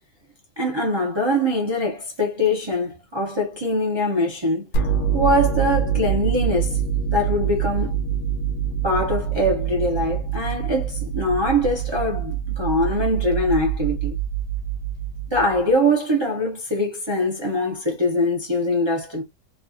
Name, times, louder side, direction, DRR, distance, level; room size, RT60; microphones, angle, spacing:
voice 1, 0.6-4.7 5.1-6.8 7.1-7.9 8.8-14.2 15.3-19.2, left 1 dB, 25° right, 0.6 m, -23 dB
sound 1, 4.7-15.7, right 7 dB, 85° left, 1.1 m, -25 dB
3.2 x 2.4 x 2.5 m
omnidirectional pair, 1.5 m